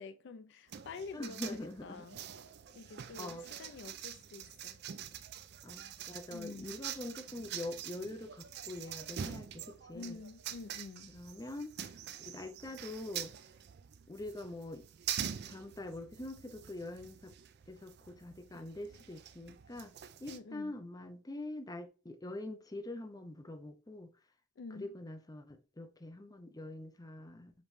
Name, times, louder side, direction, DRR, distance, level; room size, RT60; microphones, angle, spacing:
voice 1, 0.0-2.2 2.7-4.8 6.3-6.8 9.9-11.1 20.3-20.7 24.6-24.9, left 4 dB, 65° left, 0.4 m, -48 dB
sound 1, 0.7-20.4, right 9 dB, 55° right, 0.4 m, -45 dB
voice 2, 1.1-2.1 3.2-3.4 5.6-10.2 11.1-11.9 12.2-13.3 14.1-14.9 15.5-17.3 17.7-19.9 20.2-24.1 24.7-27.6, left 2 dB, 20° left, 0.6 m, -44 dB
5.2 x 3.0 x 2.6 m
head